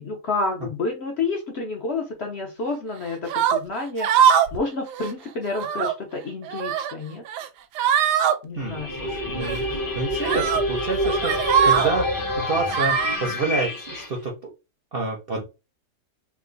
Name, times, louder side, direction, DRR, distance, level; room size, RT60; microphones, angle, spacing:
voice 1, 0.0-7.2 8.4-8.9, left 3 dB, 55° left, 2 dB, 0.7 m, -29 dB
sound 1, 3.3-3.6 4.0-4.6 4.9-5.1 5.5-5.9 6.4-6.9 7.3-7.5 7.8-8.3 9.4-9.6 10.2-10.6 11.0-11.9 12.7-13.2, right 8 dB, 85° right, 1.2 m, -21 dB
sound 2, 8.6-14.1, left 1 dB, 25° left, 0.4 m, -27 dB
voice 2, 8.6-14.4 14.9-15.4, right 3 dB, 55° right, 0 dB, 0.6 m, -29 dB
3.0 x 2.4 x 3.8 m, 0.28 s
omnidirectional pair, 1.7 m